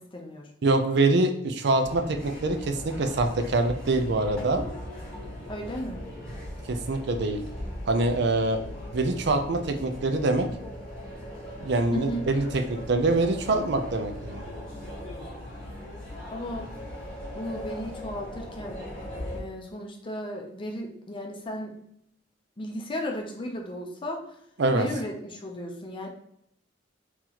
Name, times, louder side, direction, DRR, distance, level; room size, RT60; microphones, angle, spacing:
voice 1, 0.0-0.5 5.5-6.0 11.9-12.2 16.3-16.7 17.3-18.8 19.3-21.8 22.6-24.2 24.7-26.1, left 1 dB, 25° left, 2 dB, 0.6 m, -35 dB
voice 2, 0.6-4.6 6.7-7.4 7.9-8.6 8.9-10.5 11.6-14.4 24.6-24.9, right 2 dB, 60° right, 6 dB, 0.5 m, -25 dB
sound 1, 1.8-19.4, equal, 5° left, 1.4 m, -39 dB
3.9 x 2.9 x 2.9 m, 0.72 s
head